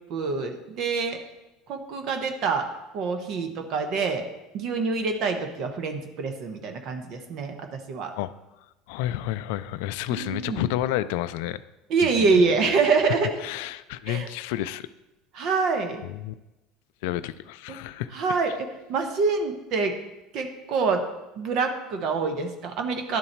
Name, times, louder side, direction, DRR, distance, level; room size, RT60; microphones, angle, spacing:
voice 1, 0.1-1.2 1.7-2.7 2.9-4.2 4.5-7.5 7.9-8.1 10.1-10.6 11.9-13.3 14.1-14.3 15.3-16.0 17.7-17.8 18.1-19.9 20.3-21.0 21.4-23.2, right 4 dB, 60° right, 5 dB, 1.0 m, -25 dB
voice 2, 8.9-11.6 12.2-12.4 13.4-14.9 16.0-16.3 17.0-18.4, left 13 dB, 75° left, 15 dB, 0.3 m, -30 dB
11.5 x 3.9 x 4.5 m, 0.99 s
supercardioid pair, 95°, 0 cm